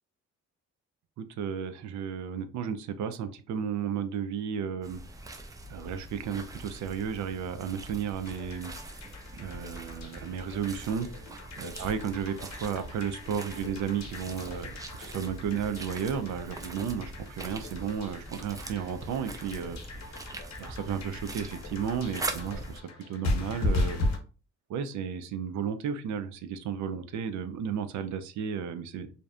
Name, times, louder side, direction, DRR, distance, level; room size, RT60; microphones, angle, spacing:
voice 1, 1.2-5.0 5.7-8.7 9.3-11.1 11.6-19.8 20.6-22.8 23.1-24.0 24.7-29.1, right 7 dB, 70° right, 10 dB, 0.4 m, -33 dB
sound 1, 4.8-22.8, right 1 dB, 10° right, 0.3 m, -42 dB
sound 2, 8.2-24.2, left 2 dB, 60° left, 0.8 m, -37 dB
2.6 x 2.1 x 2.4 m, 0.36 s
cardioid pair, 90°, 30 cm